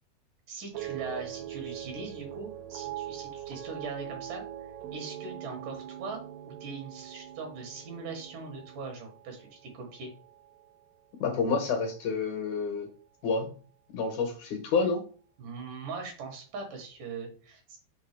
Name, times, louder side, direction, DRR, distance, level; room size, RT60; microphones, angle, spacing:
voice 1, 0.5-6.2 6.6-10.1 15.4-17.8, right 4 dB, 65° right, 3 dB, 2.9 m, -41 dB
sound 1, 0.7-11.1 11.4-12.0, right 12 dB, 85° right, 2.7 m, -42 dB
voice 2, 11.2-12.9 13.2-13.5 13.9-15.0, left 4 dB, 70° left, 4 dB, 2.1 m, -28 dB
6.2 x 3.7 x 4.9 m, 0.39 s
omnidirectional pair, 4.2 m